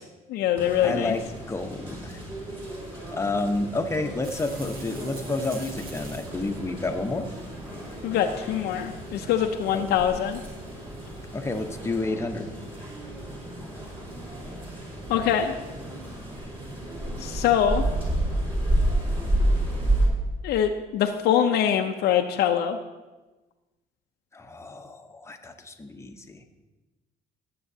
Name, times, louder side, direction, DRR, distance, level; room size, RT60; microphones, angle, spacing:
voice 1, 0.3-1.2 8.0-10.4 15.1-15.5 17.2-17.8 20.4-22.8, left 9 dB, 80° left, 4 dB, 0.6 m, -24 dB
sound 1, 0.6-20.1, right 1 dB, 35° right, 4.0 m, -31 dB
voice 2, 0.8-1.2 1.5-2.2 3.1-7.3 9.7-9.9 11.3-12.5 24.3-26.4, left 2 dB, 15° left, 5 dB, 0.9 m, -30 dB
sound 2, 4.2-11.8, right 1 dB, 60° right, 2.0 m, -44 dB
17.5 x 7.7 x 2.8 m, 1.2 s
cardioid pair, 110°, 17 cm